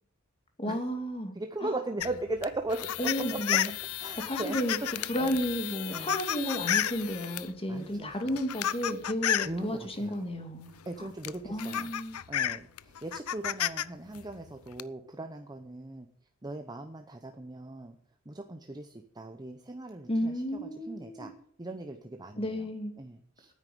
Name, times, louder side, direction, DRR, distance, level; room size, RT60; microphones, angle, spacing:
voice 1, 0.6-1.3 1.6-1.7 3.0-3.7 4.2-10.7 11.0-11.1 11.5-12.2 20.1-21.3 22.4-22.9, equal, 25° left, 5 dB, 2.2 m, -32 dB
voice 2, 1.3-3.6 4.0-4.6 4.9-5.4 5.9-6.2 7.7-8.4 9.4-10.3 10.9-11.9 12.3-16.1 16.4-18.0 18.3-21.3 21.6-22.7 23.0-23.5, right 2 dB, 20° right, 6 dB, 0.8 m, -39 dB
sound 1, 2.0-7.5 8.2-9.6 10.8-10.9 11.2-13.8 14.1-14.8, left 11 dB, 90° left, 0.5 m, -32 dB
9.7 x 9.0 x 9.2 m, 0.64 s
head